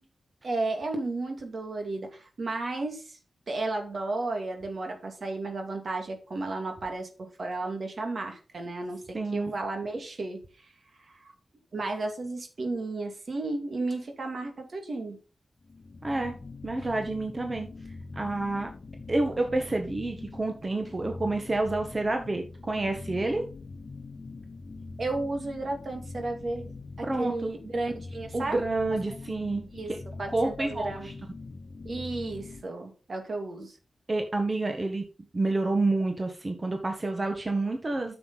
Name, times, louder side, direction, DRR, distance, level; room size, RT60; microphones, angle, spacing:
voice 1, 0.4-3.2 3.5-10.7 11.1-11.3 11.7-15.2 25.0-28.6 29.7-29.9 30.2-31.1 31.8-33.8, right 2 dB, 65° right, 4 dB, 2.3 m, -33 dB
voice 2, 9.1-9.6 16.0-16.3 16.6-17.7 18.1-18.7 19.1-23.4 27.0-27.5 28.3-30.0 30.3-31.1 34.1-35.0 35.3-38.2, right 2 dB, 35° right, 4 dB, 1.5 m, -29 dB
sound 1, 15.6-32.6, left 3 dB, 60° left, 1.1 m, -43 dB
9.4 x 7.0 x 4.2 m, 0.36 s
cardioid pair, 55°, 0 cm